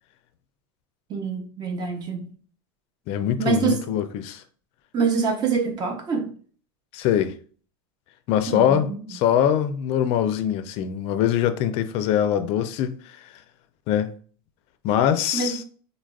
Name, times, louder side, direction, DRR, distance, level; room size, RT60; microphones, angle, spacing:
voice 1, 1.1-2.3 3.4-3.9 4.9-6.3 8.5-9.2 15.3-15.6, right 5 dB, 35° right, 0.5 m, -25 dB
voice 2, 3.1-4.4 6.9-7.4 8.3-13.3 13.9-14.1 14.8-15.6, left 10 dB, 50° left, 0.4 m, -23 dB
3.4 x 2.0 x 2.3 m
supercardioid pair, 110°, 13 cm